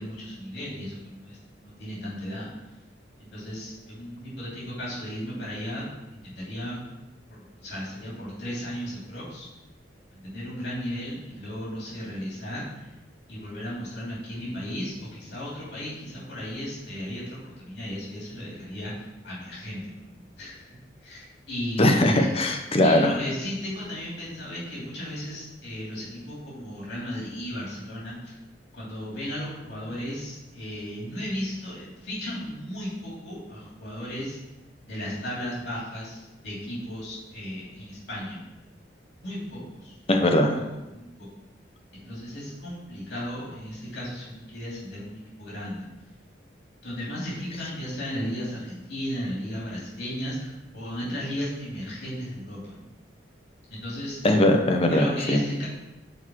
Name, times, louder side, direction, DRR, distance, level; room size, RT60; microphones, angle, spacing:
voice 1, 0.0-1.4 1.6-2.5 3.2-5.9 6.1-6.8 7.3-9.5 10.1-12.9 13.3-20.7 21.0-22.3 22.8-28.4 28.7-34.4 34.8-38.4 39.2-40.0 40.5-40.6 40.9-41.4 41.9-45.8 46.8-52.8 53.7-54.2 54.9-55.7, equal, 65° left, -7 dB, 3.0 m, -35 dB
voice 2, 21.8-23.1 40.1-40.6 54.2-55.4, left 1 dB, 35° left, 3 dB, 0.9 m, -20 dB
6.5 x 4.5 x 6.1 m, 1.0 s
head